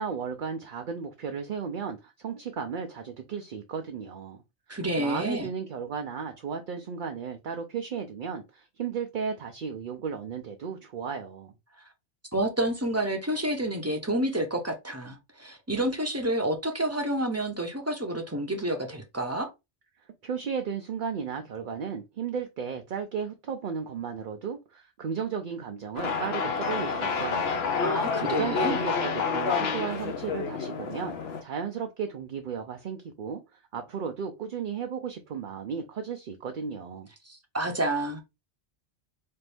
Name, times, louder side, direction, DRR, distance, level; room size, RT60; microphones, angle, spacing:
voice 1, 0.0-4.4 4.7-11.5 20.2-27.7 28.0-31.1 31.4-33.4 33.7-37.1, right 6 dB, 55° right, 0.6 m, -34 dB
voice 2, 4.7-5.5 11.8-11.9 12.3-19.5 27.8-28.8 37.2-38.2, right 1 dB, 15° right, 0.7 m, -29 dB
sound 1, 26.0-31.4, left 5 dB, 65° left, 1.0 m, -29 dB
4.3 x 2.6 x 3.3 m
omnidirectional pair, 1.2 m